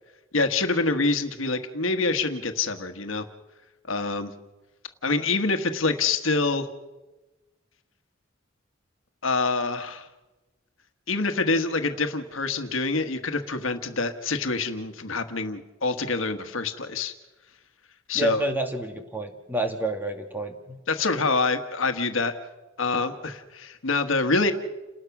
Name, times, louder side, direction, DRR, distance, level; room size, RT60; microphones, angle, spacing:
voice 1, 0.3-3.3 3.9-4.3 5.0-6.7 9.2-10.1 11.1-17.1 18.1-18.4 20.9-22.3 22.8-24.5, left 3 dB, 80° left, 8 dB, 1.5 m, -26 dB
voice 2, 18.1-20.8, right 1 dB, 10° right, 4 dB, 2.2 m, -29 dB
29.5 x 19.5 x 6.0 m, 1.1 s
head